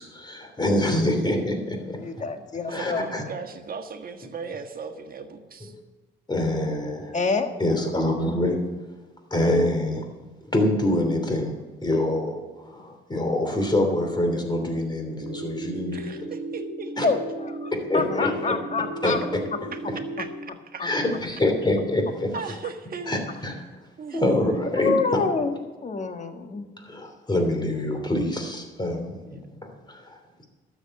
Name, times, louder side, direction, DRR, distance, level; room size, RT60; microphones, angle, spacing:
voice 1, 0.0-2.0 2.7-3.2 6.3-7.2 7.6-8.7 9.3-10.0 10.5-16.2 17.0-17.1 17.9-18.5 19.0-19.4 20.8-22.3 23.1-23.5 24.1-24.9 26.8-30.2, left 1 dB, 20° left, 4 dB, 3.1 m, -25 dB
voice 2, 0.6-1.2 2.7-5.7 15.9-16.9 19.7-19.8 20.2-20.8 22.3-23.2 24.0-24.4 25.1-25.3 29.2-29.4, right 5 dB, 45° right, 5 dB, 1.6 m, -37 dB
voice 3, 2.0-3.0 7.1-7.5 17.0-19.2 20.8-21.2 24.8-26.7, left 4 dB, 35° left, 6 dB, 1.6 m, -27 dB
sound 1, 15.2-20.4, right 2 dB, 65° right, 1.8 m, -35 dB
12.5 x 7.3 x 7.8 m, 1.3 s
cardioid pair, 90°, 20 cm